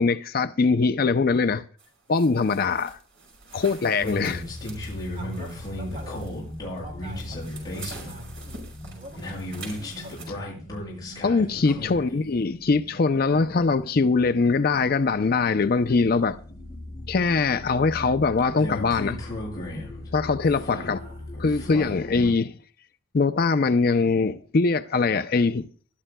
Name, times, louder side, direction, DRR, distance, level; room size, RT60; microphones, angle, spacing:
voice 1, 0.0-1.6 2.1-3.0 3.5-4.4 11.2-16.4 17.1-19.2 20.1-21.0 21.4-22.5 23.1-25.7, left 4 dB, 45° left, 0.4 m, -22 dB
sound 1, 1.8-10.3, right 3 dB, 65° right, 5.1 m, -46 dB
voice 2, 3.5-4.3 5.1-10.7 12.0-12.1 17.5-17.7 20.7-21.3, right 1 dB, 35° right, 2.8 m, -47 dB
sound 2, 4.0-22.3, left 1 dB, 20° left, 7.3 m, -36 dB
21.5 x 12.0 x 2.2 m
head